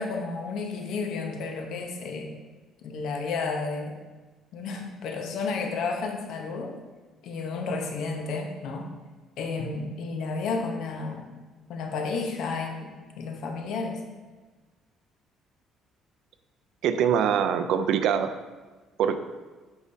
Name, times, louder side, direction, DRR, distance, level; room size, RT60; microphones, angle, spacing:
voice 1, 0.0-2.3 2.8-4.0 4.5-6.7 7.2-8.9 9.4-11.3 11.7-14.0, left 4 dB, 70° left, 3 dB, 0.8 m, -32 dB
voice 2, 16.8-18.3 19.0-19.2, right 8 dB, 70° right, 10 dB, 0.4 m, -23 dB
7.1 x 5.0 x 2.7 m, 1.3 s
cardioid pair, 125°, 0 cm